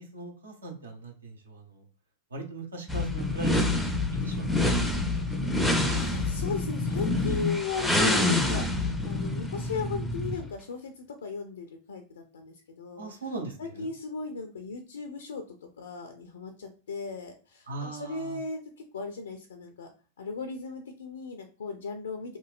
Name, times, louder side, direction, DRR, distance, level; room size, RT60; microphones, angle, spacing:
voice 1, 0.0-1.8 2.3-3.9 4.2-5.0 5.3-5.8 13.0-13.9 17.7-18.4, right 3 dB, 70° right, 1 dB, 0.8 m, -39 dB
sound 1, 2.9-10.5, left 2 dB, 5° left, 0.4 m, -27 dB
voice 2, 5.1-5.4 5.9-8.7 9.0-13.1 13.6-19.9 20.2-22.4, left 5 dB, 65° left, 5 dB, 0.3 m, -37 dB
2.9 x 2.5 x 2.4 m, 0.40 s
figure-of-eight pair, 90°, 0 cm